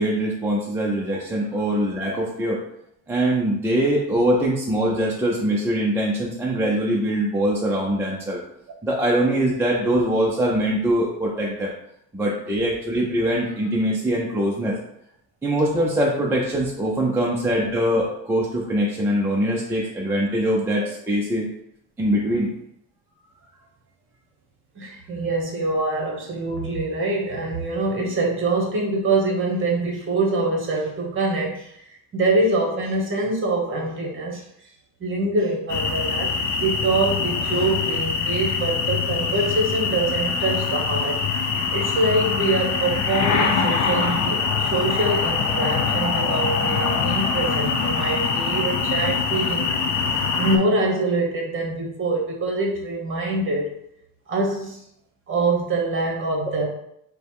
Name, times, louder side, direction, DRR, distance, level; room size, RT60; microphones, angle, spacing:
voice 1, 0.0-2.6 3.1-8.4 8.8-11.7 12.1-14.8 15.4-21.5 22.0-22.5, right 1 dB, 5° right, -4 dB, 0.4 m, -22 dB
voice 2, 24.7-34.4 35.0-36.3 36.6-49.7 50.4-53.7 54.3-54.8 55.3-56.7, right 2 dB, 35° right, 0 dB, 1.1 m, -24 dB
sound 1, 35.7-50.6, left 5 dB, 50° left, 0.7 m, -23 dB
5.1 x 2.2 x 4.6 m, 0.75 s
cardioid pair, 165°, 36 cm